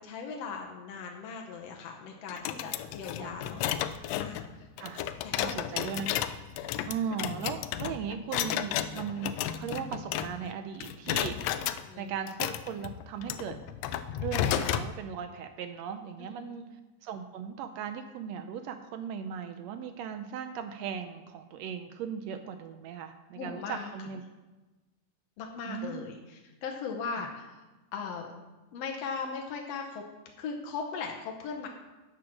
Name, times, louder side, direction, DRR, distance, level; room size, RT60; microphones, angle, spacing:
voice 1, 0.0-3.6 4.2-4.7 5.2-5.5 11.8-12.1 16.2-16.6 23.4-23.9 25.4-27.5 27.9-28.3 28.7-30.0 30.4-31.7, left 5 dB, 65° left, 1 dB, 1.8 m, -38 dB
sound 1, 2.3-10.5 10.8-11.8 12.3-14.9, left 11 dB, 85° left, 1.5 m, -33 dB
voice 2, 5.3-6.1 6.9-11.6 12.0-13.6 14.2-16.7 17.0-24.2 25.7-26.1 27.1-27.3, right 7 dB, 80° right, 8 dB, 1.5 m, -38 dB
9.8 x 7.5 x 6.0 m, 1.1 s
omnidirectional pair, 3.6 m